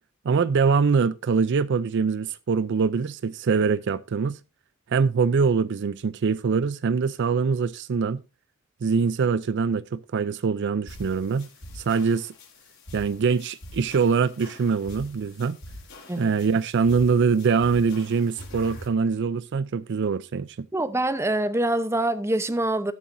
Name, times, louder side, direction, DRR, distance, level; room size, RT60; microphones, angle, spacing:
voice 1, 0.2-4.4 4.9-8.2 8.8-11.5 11.7-12.3 12.9-15.6 16.2-20.7, right 5 dB, 60° right, 0.4 m, -23 dB
sound 1, 10.9-18.9, left 1 dB, 65° left, 5.0 m, -44 dB
voice 2, 20.7-22.9, right 1 dB, 15° right, 0.7 m, -25 dB
18.5 x 7.0 x 2.6 m
head